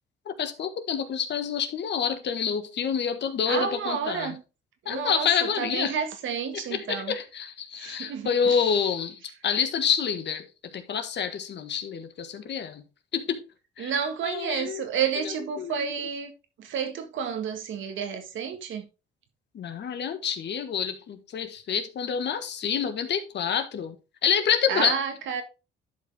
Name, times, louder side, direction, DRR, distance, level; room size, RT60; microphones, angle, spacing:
voice 1, 0.2-4.3 4.8-5.9 6.7-12.8 13.1-13.4 13.8-13.9 14.2-14.8 15.6-15.9 19.5-23.9 24.2-24.9, left 7 dB, 60° left, 1.4 m, -28 dB
voice 2, 3.5-4.4 4.8-7.2 7.7-8.7 13.8-16.3 16.6-18.9 24.7-25.4, right 7 dB, 75° right, 1.7 m, -30 dB
11.0 x 5.2 x 3.4 m
cardioid pair, 90°, 20 cm